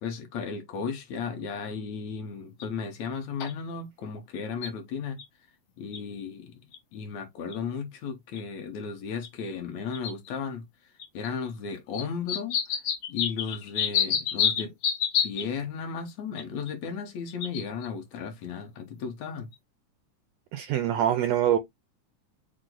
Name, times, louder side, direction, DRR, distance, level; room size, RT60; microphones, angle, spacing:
voice 1, 0.0-5.2 5.8-6.6 6.9-12.8 13.1-14.7 15.2-19.5, left 6 dB, 70° left, 2.1 m, -35 dB
sound 1, 2.6-2.7 3.4-3.5 4.4-4.7 5.2-5.3 5.9-6.0 6.7-6.8 7.5-7.6 8.3-8.4 9.2-9.3 9.9-10.3 11.0-11.3 11.9-15.4 16.4-16.7 17.3-17.9 19.5-19.6, left 8 dB, 85° left, 1.1 m, -28 dB
voice 2, 20.5-21.6, right 10 dB, 80° right, 1.5 m, -24 dB
6.2 x 2.1 x 3.7 m
omnidirectional pair, 3.6 m